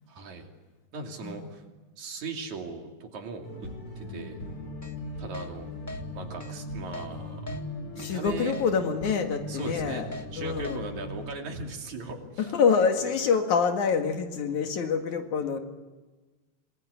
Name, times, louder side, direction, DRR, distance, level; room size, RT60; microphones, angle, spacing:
voice 1, 0.1-0.5 0.9-1.6 2.0-3.7 4.0-4.4 5.2-5.7 6.1-7.4 8.0-8.5 9.5-10.0 10.3-12.5 13.0-13.1, right 3 dB, 75° right, 2 dB, 4.2 m, -38 dB
voice 2, 1.2-1.5 8.0-10.1 10.4-10.8 12.4-15.6, left 6 dB, 85° left, 5 dB, 3.4 m, -26 dB
sound 1, 3.4-11.3, left 1 dB, 55° left, 5.9 m, -39 dB
Keyboard (musical), 4.8-4.9 5.3-5.5 5.9-6.0 6.4-6.5 6.9-7.1 7.5-7.6 8.0-8.1 8.5-8.7 9.1-9.2 9.6-9.7 10.1-10.3 10.6-10.8, left 1 dB, 10° left, 0.7 m, -40 dB
27.0 x 21.0 x 9.6 m, 1.3 s
omnidirectional pair, 3.3 m